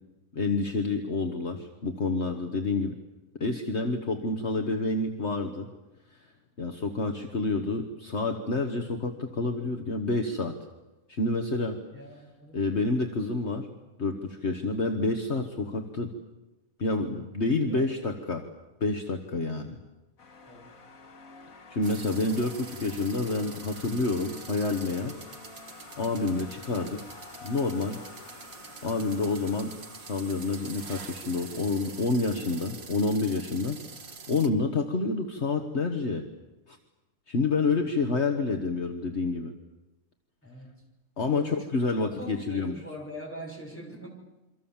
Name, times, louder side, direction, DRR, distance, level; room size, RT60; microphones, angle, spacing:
voice 1, 0.3-2.9 3.4-5.7 6.6-10.6 11.1-11.8 12.5-13.7 14.0-16.1 16.8-18.5 18.8-19.8 21.7-25.1 26.0-27.0 27.4-28.0 28.8-29.8 30.1-36.3 36.7-36.8 37.3-39.6 41.2-42.7, left 3 dB, 50° left, 5 dB, 1.8 m, -28 dB
voice 2, 11.9-12.6 17.7-17.8 20.5-20.7 40.4-40.8 41.3-41.6 41.9-44.1, equal, 10° left, 0 dB, 6.3 m, -42 dB
sound 1, 20.2-35.0, left 4 dB, 75° left, 2.4 m, -50 dB
sound 2, 21.8-34.5, right 5 dB, 50° right, 1.6 m, -46 dB
28.0 x 24.5 x 7.4 m, 1.0 s
omnidirectional pair, 1.5 m